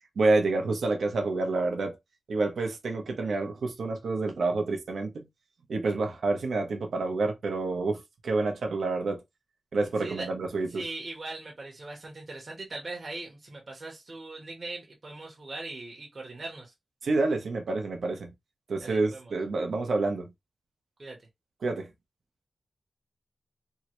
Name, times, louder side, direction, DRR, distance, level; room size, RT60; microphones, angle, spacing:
voice 1, 0.2-2.0 2.3-5.3 5.7-9.2 9.7-10.8 17.0-18.3 18.7-20.3 21.6-21.9, right 3 dB, 80° right, 0.8 m, -28 dB
voice 2, 10.7-16.7 18.8-19.3 21.0-21.2, right 2 dB, 40° right, 1.0 m, -40 dB
3.7 x 2.1 x 3.0 m
wide cardioid pair, 120°, 0 cm